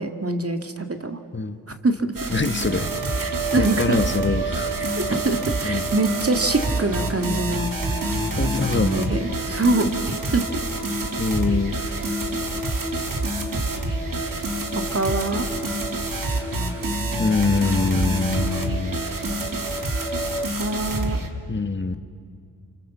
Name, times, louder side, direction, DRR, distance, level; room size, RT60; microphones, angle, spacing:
voice 1, 0.0-1.2 1.8-2.1 3.2-4.0 4.8-7.7 8.7-10.5 14.9-15.5 20.6-21.2, right 2 dB, 35° right, 6 dB, 2.1 m, -24 dB
sound 1, 2.2-21.3, right 2 dB, 50° right, 2.5 m, -28 dB
voice 2, 2.3-2.9 3.6-4.7 5.6-5.9 8.4-9.1 11.2-11.8 17.2-19.0 21.5-21.9, left 4 dB, 25° left, 9 dB, 1.4 m, -24 dB
sound 2, 2.5-20.5, left 1 dB, 10° left, 3.1 m, -36 dB
sound 3, 2.6-8.5, right 7 dB, 75° right, 1.3 m, -32 dB
30.0 x 26.0 x 7.3 m, 2.3 s
cardioid pair, 55°, 41 cm